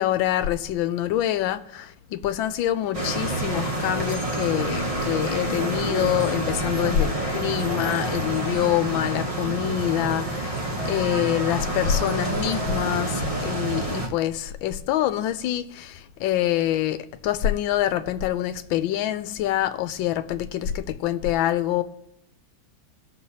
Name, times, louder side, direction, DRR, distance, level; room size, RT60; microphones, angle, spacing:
voice 1, 0.0-21.8, left 12 dB, 85° left, 1.4 m, -26 dB
sound 1, 2.9-14.1, right 1 dB, 25° right, 0.8 m, -28 dB
18.5 x 6.3 x 2.8 m
omnidirectional pair, 2.1 m